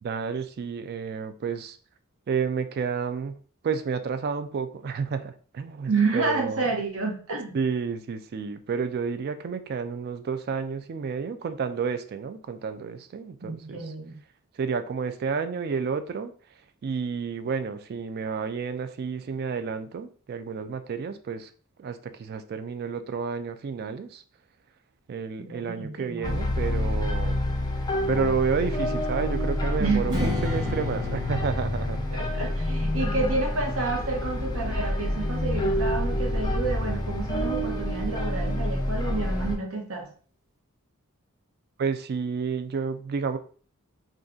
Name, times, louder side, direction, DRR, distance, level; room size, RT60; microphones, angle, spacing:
voice 1, 0.0-1.8 2.3-3.4 3.6-6.7 7.5-13.8 14.6-16.3 16.8-21.5 21.8-24.2 25.1-27.4 28.1-32.0 41.8-43.4, right 5 dB, 45° right, 0.3 m, -30 dB
voice 2, 5.9-7.6 13.4-14.2 25.4-26.4 29.8-30.4 32.1-40.1, right 3 dB, 70° right, 0.9 m, -29 dB
sound 1, 26.2-39.6, left 1 dB, 20° left, 0.4 m, -28 dB
Strum, 30.1-35.3, left 2 dB, 20° right, 0.7 m, -36 dB
2.6 x 2.3 x 3.6 m
head